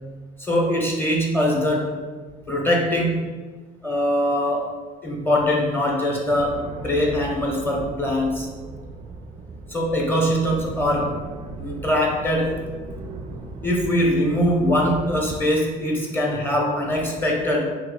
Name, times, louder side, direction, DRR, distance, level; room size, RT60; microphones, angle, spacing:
voice 1, 0.4-2.0 2.5-3.3 3.8-4.7 5.0-8.5 9.7-11.3 11.6-12.6 13.6-17.7, left 1 dB, 15° left, -1 dB, 0.9 m, -22 dB
sound 1, 6.3-15.4, right 3 dB, 35° right, 0.4 m, -37 dB
3.0 x 2.9 x 3.8 m, 1.4 s
supercardioid pair, 100°, 16 cm